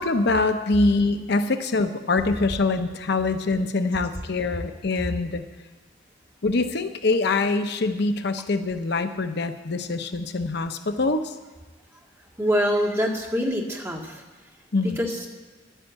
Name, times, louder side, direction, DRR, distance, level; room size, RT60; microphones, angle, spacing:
voice 1, 0.0-5.4 6.4-11.3 14.7-15.0, left 3 dB, 60° left, 8 dB, 0.8 m, -24 dB
voice 2, 12.4-14.2 15.0-15.3, equal, 15° right, 0 dB, 1.8 m, -25 dB
11.0 x 10.0 x 8.1 m, 1.3 s
head